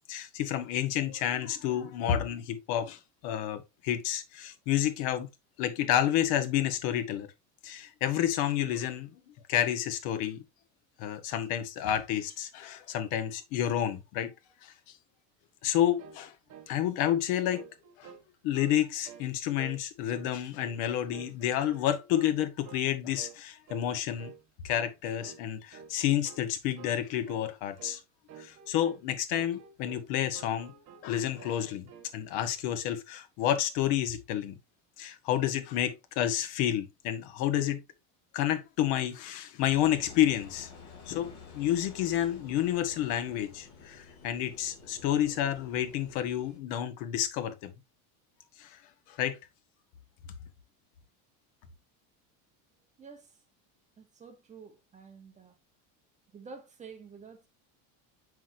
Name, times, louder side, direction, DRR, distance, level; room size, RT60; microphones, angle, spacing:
voice 1, 0.1-5.3 5.6-7.3 7.6-9.1 9.5-10.4 11.0-14.3 14.6-14.7 15.6-16.3 16.7-17.6 18.0-18.1 18.4-24.3 24.6-28.0 28.4-30.7 31.0-34.5 35.0-37.8 38.3-40.7 41.1-47.7 48.6-48.8 49.1-49.4, left 11 dB, 60° left, 1.4 m, -30 dB
sound 1, 16.0-16.2 16.5-16.7 17.0-18.2 18.5-18.8 19.0-19.3 19.6-19.8 20.1-20.8 21.1-21.9 22.1-22.4 22.6-22.9 23.2-23.4 23.7-23.9 24.2-24.4 24.7-24.9 25.2-25.4 25.7-26.0 26.2-26.4 26.8-27.0 27.3-27.5 27.8-28.0 28.3-29.0 29.3-30.1 30.3-31.1 31.4-32.1, right 8 dB, 40° right, 1.3 m, -49 dB
Engine, 39.6-46.6, left 5 dB, 40° left, 3.9 m, -50 dB
voice 2, 53.0-53.3 54.0-55.6 56.3-57.5, right 5 dB, 15° right, 1.0 m, -49 dB
7.2 x 6.1 x 2.7 m
cardioid pair, 170°, 42 cm